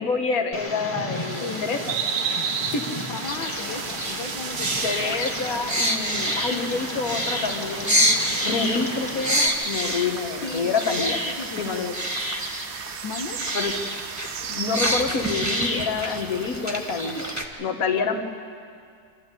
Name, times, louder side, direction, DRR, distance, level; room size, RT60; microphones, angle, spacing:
voice 1, 0.0-1.8 2.3-2.9 3.4-3.6 4.8-8.1 8.4-11.2 11.6-11.9 13.5-13.7 14.5-17.3 17.6-18.2, left 4 dB, 50° left, 5 dB, 1.8 m, -27 dB
Tick, 0.5-9.5, equal, 5° left, 1.5 m, -35 dB
sound 1, 1.1-14.8, right 8 dB, 85° right, 1.6 m, -34 dB
voice 2, 3.1-5.2 6.5-6.8 8.7-9.0 10.4-11.6 13.0-13.4, left 5 dB, 75° left, 3 dB, 1.8 m, -35 dB
sound 2, 3.2-17.4, equal, 10° right, 1.4 m, -28 dB
27.0 x 13.0 x 8.3 m, 2.2 s
omnidirectional pair, 2.1 m